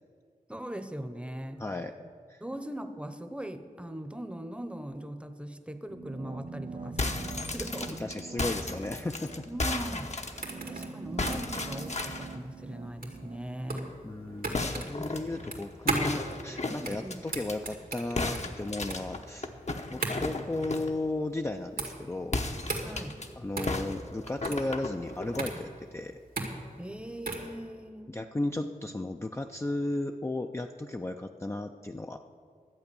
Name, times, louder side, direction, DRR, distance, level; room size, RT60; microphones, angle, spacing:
voice 1, 0.5-1.6 2.4-8.0 9.5-10.2 10.6-14.0 15.0-15.1 16.8-17.2 22.8-23.1 26.8-28.2, right 1 dB, 10° right, 9 dB, 0.9 m, -40 dB
voice 2, 1.6-1.9 2.3-2.4 8.0-9.5 14.0-19.5 19.9-22.4 23.4-26.2 28.1-32.2, left 2 dB, 20° left, 4 dB, 0.5 m, -35 dB
sound 1, 5.9-14.8, right 4 dB, 50° right, 0.8 m, -45 dB
sound 2, 6.8-10.8 11.2-12.3 14.5-17.6 18.2-21.0 22.2-23.3 23.7-25.5, left 2 dB, 50° left, 0.9 m, -35 dB
sound 3, 9.8-27.5, right 2 dB, 80° right, 1.8 m, -37 dB
12.0 x 8.0 x 6.9 m, 2.2 s
wide cardioid pair, 50°, 15 cm